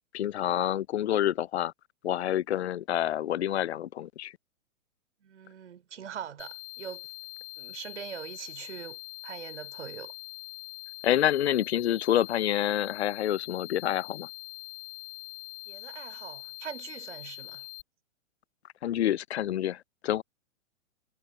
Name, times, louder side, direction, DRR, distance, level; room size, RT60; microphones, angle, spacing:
voice 1, 0.1-1.7 2.0-4.3 11.0-14.3 18.8-20.2, left 12 dB, 55° left, 0.6 m, -28 dB
voice 2, 5.2-7.1 7.6-10.1 15.7-17.7, right 8 dB, 60° right, 3.8 m, -42 dB
sound 1, 6.4-17.8, left 31 dB, 40° left, 4.1 m, -43 dB
figure-of-eight pair, 115°, 39 cm